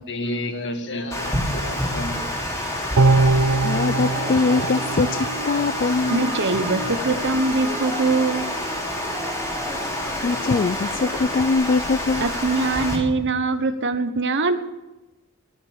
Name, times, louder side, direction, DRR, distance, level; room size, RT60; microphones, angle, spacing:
voice 1, 0.1-2.2, left 1 dB, 55° left, 6 dB, 1.8 m, -30 dB
Water, 1.1-13.0, left 1 dB, 15° left, 3.3 m, -28 dB
sound 1, 3.0-6.3 6.7-6.8, right 3 dB, 75° right, 0.6 m, -22 dB
voice 2, 3.6-6.4 10.2-12.3, left 4 dB, 40° left, 12 dB, 0.4 m, -22 dB
sound 2, 4.1-11.5, right 1 dB, 30° right, 2.4 m, -36 dB
voice 3, 6.1-8.4 12.2-14.6, right 3 dB, 55° right, 9 dB, 1.2 m, -22 dB
20.5 x 7.1 x 6.6 m, 1.0 s
head